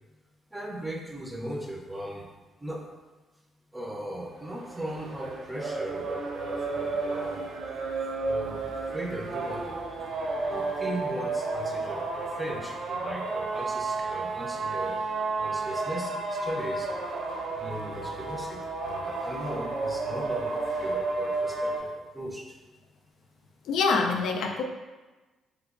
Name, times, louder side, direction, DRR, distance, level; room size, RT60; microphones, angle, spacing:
voice 1, 0.5-2.2 2.6-2.8 3.7-7.5 8.2-9.8 10.5-16.9 17.5-22.6, right 1 dB, 10° right, 0 dB, 0.5 m, -38 dB
sound 1, 4.4-21.8, right 3 dB, 65° right, 0.4 m, -32 dB
voice 2, 23.7-24.6, left 4 dB, 80° left, 2 dB, 0.3 m, -25 dB
3.2 x 2.9 x 2.4 m, 1.2 s
cardioid pair, 90°, 0 cm